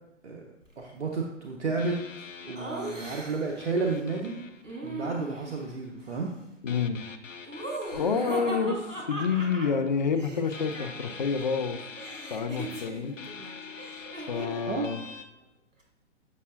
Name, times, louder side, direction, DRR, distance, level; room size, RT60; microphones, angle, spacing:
voice 1, 0.8-2.0 2.4-4.4 4.8-6.3 8.6-8.7 14.7-14.9, right 4 dB, 65° right, 0 dB, 0.9 m, -31 dB
sound 1, 1.8-5.6 6.7-10.2 10.5-15.3, left 5 dB, 90° left, 0.6 m, -45 dB
Laughter, 2.6-3.6 4.6-5.7 7.5-11.3 11.6-14.7, right 1 dB, 80° right, 1.7 m, -39 dB
voice 2, 6.6-7.0 7.9-11.8 12.3-13.1 14.3-15.0, left 5 dB, 40° left, 7 dB, 0.4 m, -28 dB
7.4 x 5.4 x 2.4 m, 0.90 s
figure-of-eight pair, 125°, 37 cm